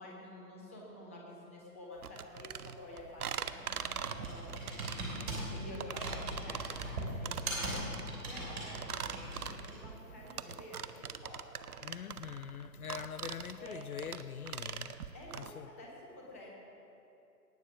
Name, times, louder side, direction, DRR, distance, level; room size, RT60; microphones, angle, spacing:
voice 1, 0.0-3.3 3.8-7.8 8.3-11.9 13.6-13.8 15.1-16.5, left 1 dB, 10° left, 0.5 m, -50 dB
sound 1, 2.0-15.5, right 8 dB, 65° right, 0.7 m, -42 dB
Computer keyboard, 3.0-9.9, right 1 dB, 40° right, 3.0 m, -41 dB
voice 2, 11.8-15.0 15.3-15.7, left 8 dB, 65° left, 0.5 m, -43 dB
18.5 x 6.5 x 6.0 m
figure-of-eight pair, 135°, 48 cm